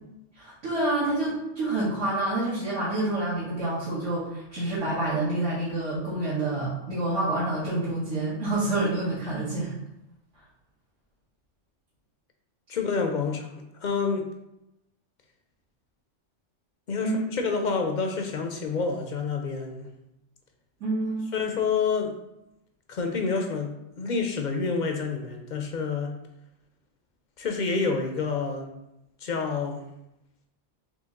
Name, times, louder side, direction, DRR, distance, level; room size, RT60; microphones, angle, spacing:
voice 1, 0.4-9.7 17.0-17.2 20.8-21.3, right 2 dB, 75° right, -9 dB, 1.6 m, -28 dB
voice 2, 12.7-13.5 13.8-14.2 16.9-19.9 21.3-22.1 22.9-26.1 27.4-28.7 29.2-29.8, left 4 dB, 55° left, 4 dB, 0.6 m, -28 dB
4.0 x 3.1 x 3.7 m, 0.87 s
omnidirectional pair, 1.3 m